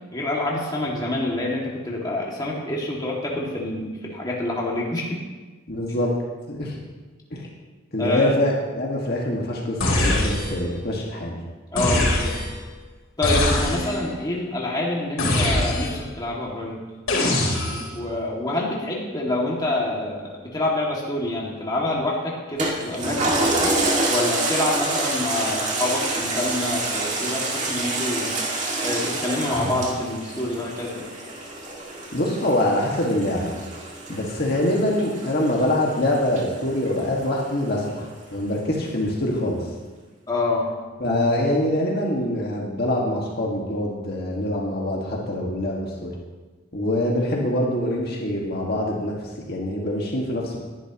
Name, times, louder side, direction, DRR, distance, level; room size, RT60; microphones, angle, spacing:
voice 1, 0.1-5.1 8.0-8.3 11.7-12.3 13.2-16.8 17.7-23.7 24.1-28.3 28.8-31.1 40.3-40.7, left 2 dB, 20° left, -4 dB, 2.3 m, -27 dB
voice 2, 5.7-6.1 6.5-6.7 7.3-7.5 7.9-11.4 32.1-33.5 34.1-39.7 41.0-46.1 46.7-49.2 49.5-50.6, left 1 dB, 50° left, -2 dB, 1.9 m, -24 dB
sound 1, 9.8-10.7 11.8-12.6 13.2-14.1 15.2-16.1 17.1-18.0, left 1 dB, 85° left, 4.0 m, -23 dB
Toilet flush, 22.6-37.4 37.9-38.0, right 2 dB, 35° right, 2.2 m, -27 dB
20.0 x 11.0 x 3.1 m, 1.3 s
head